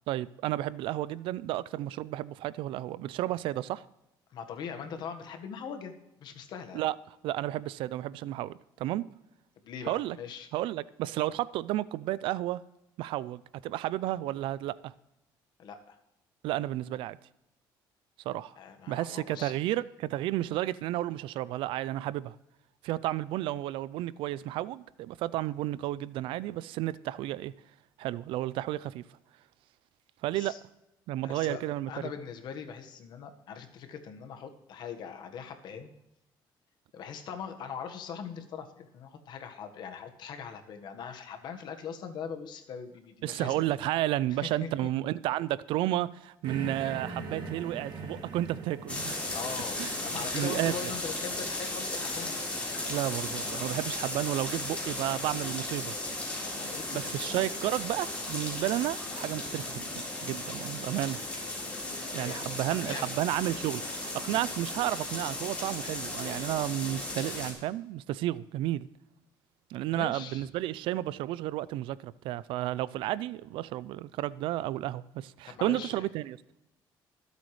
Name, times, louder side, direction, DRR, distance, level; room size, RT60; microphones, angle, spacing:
voice 1, 0.1-3.8 6.7-7.0 7.2-9.0 9.9-10.2 10.5-12.6 13.0-14.9 16.4-17.2 18.3-18.6 18.9-22.3 22.8-27.5 28.0-29.0 30.2-30.5 31.1-32.1 43.2-49.2 49.8-50.9 52.9-55.9 56.9-61.2 62.1-68.9 69.7-76.4, right 14 dB, 85° right, 0.4 m, -32 dB
voice 2, 4.3-5.9 6.2-6.8 9.6-10.5 15.6-16.0 18.6-19.5 30.3-30.6 31.2-31.6 31.9-35.9 36.9-43.6 44.4-44.9 49.3-52.3 56.4-57.4 62.1-62.4 62.8-63.1 69.9-70.5 75.4-76.0, left 7 dB, 60° left, 1.5 m, -41 dB
sound 1, 46.4-52.0, right 3 dB, 60° right, 2.9 m, -42 dB
sound 2, 48.9-67.5, left 2 dB, 15° left, 4.1 m, -36 dB
24.5 x 8.3 x 3.2 m
cardioid pair, 140°, 9 cm